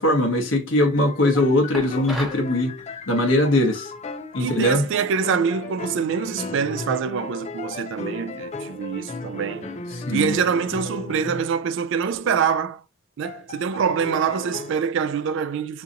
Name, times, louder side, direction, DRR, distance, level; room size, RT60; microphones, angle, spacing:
voice 1, 0.0-2.8 3.1-3.9 4.3-4.9 9.9-10.4, left 1 dB, 70° left, 0.9 m, -21 dB
sound 1, 0.8-11.6 12.2-12.5 13.2-14.7, left 3 dB, 35° left, 0.4 m, -36 dB
sound 2, 1.7-2.5, equal, ahead, 1.0 m, -33 dB
voice 2, 4.4-9.7 10.1-12.8 13.2-15.8, right 6 dB, 65° right, 0.3 m, -25 dB
2.8 x 2.6 x 3.7 m
head